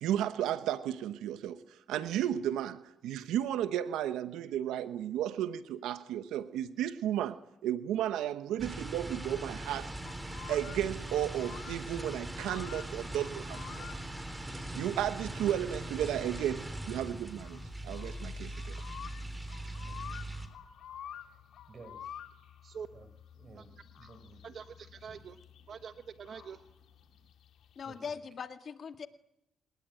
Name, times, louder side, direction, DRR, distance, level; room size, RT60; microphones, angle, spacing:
voice 1, 0.0-9.9 10.5-14.0 14.8-18.7, right 11 dB, 90° right, 1.1 m, -34 dB
sound 1, 8.6-20.5, right 1 dB, 10° right, 3.7 m, -41 dB
sound 2, 9.6-28.0, left 9 dB, 75° left, 1.9 m, -51 dB
voice 2, 19.9-20.2 21.1-21.4 21.7-22.2 22.9-23.7 24.0-24.4 25.1-25.2 27.8-28.2, right 3 dB, 40° right, 4.6 m, -55 dB
voice 3, 24.4-26.7, right 7 dB, 55° right, 1.0 m, -46 dB
voice 4, 27.8-29.1, left 6 dB, 50° left, 1.9 m, -41 dB
28.0 x 19.5 x 9.2 m
cardioid pair, 90°, 0 cm